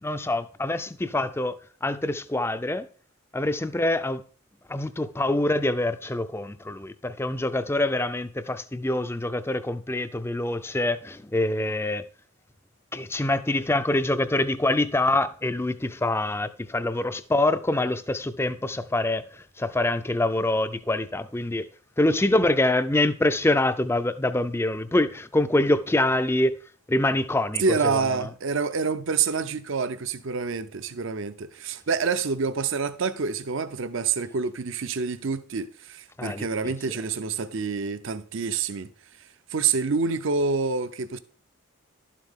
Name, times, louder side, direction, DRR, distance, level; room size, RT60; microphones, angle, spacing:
voice 1, 0.0-2.9 3.3-4.2 4.7-12.0 12.9-21.7 22.0-26.5 26.9-28.3 36.2-36.7, left 1 dB, 10° left, 0.4 m, -25 dB
voice 2, 27.6-38.9 39.5-41.2, right 5 dB, 60° right, 0.6 m, -27 dB
12.0 x 7.5 x 3.7 m
head